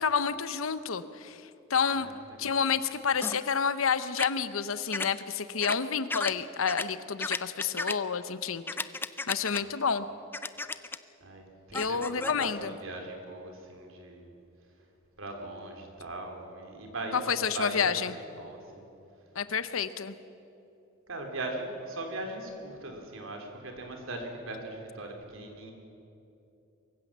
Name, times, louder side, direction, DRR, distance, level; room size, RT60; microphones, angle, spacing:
voice 1, 0.0-1.4 1.7-2.1 2.4-8.6 9.3-10.1 11.7-12.7 17.1-18.1 19.3-20.1, left 6 dB, 85° left, 13 dB, 0.8 m, -29 dB
voice 2, 2.0-2.6 9.6-9.7 11.2-14.3 15.2-18.9 21.1-25.7, right 2 dB, 80° right, 3 dB, 3.4 m, -40 dB
sound 1, 3.2-3.4 4.2-4.3 4.9-5.1 5.6-5.8 6.1-6.3 6.7-6.8 7.2-7.9 8.7-9.6 10.3-11.0 11.7-12.5, left 3 dB, 10° left, 0.4 m, -33 dB
23.0 x 15.5 x 7.4 m, 2.8 s
head